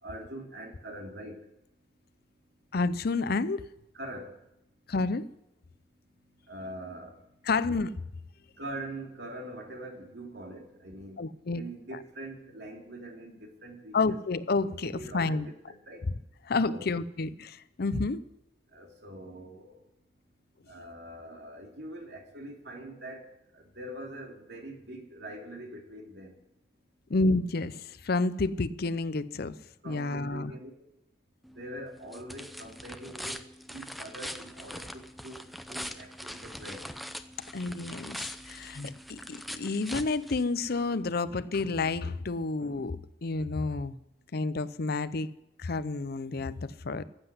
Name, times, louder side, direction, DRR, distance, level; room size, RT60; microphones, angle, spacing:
voice 1, 0.0-1.4 3.9-4.3 6.5-7.2 8.6-11.2 11.5-14.2 14.9-16.1 16.7-16.9 18.7-19.8 20.7-23.3 23.5-26.4 29.8-30.9 31.5-36.9, right 1 dB, 70° right, 2.9 m, -43 dB
voice 2, 2.7-3.7 4.9-5.3 7.5-7.9 11.2-11.7 13.9-15.5 16.5-18.2 27.1-29.6 29.9-30.5 37.5-43.9 44.3-45.3 45.6-47.0, left 3 dB, 60° left, 0.6 m, -30 dB
sound 1, 31.4-40.9, equal, ahead, 0.7 m, -42 dB
15.0 x 7.9 x 9.6 m
head